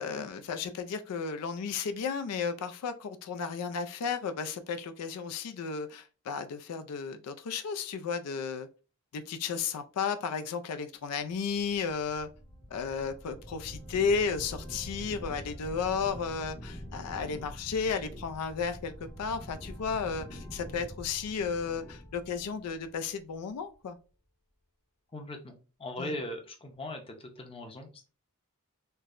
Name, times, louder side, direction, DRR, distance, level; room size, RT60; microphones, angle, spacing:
voice 1, 0.0-8.7 9.1-12.3 12.7-24.0 26.0-26.1, left 5 dB, 90° left, 0.4 m, -33 dB
sound 1, 11.4-23.5, equal, 55° left, 1.2 m, -45 dB
voice 2, 25.1-28.1, left 1 dB, 25° left, 0.6 m, -40 dB
4.4 x 2.0 x 2.5 m
head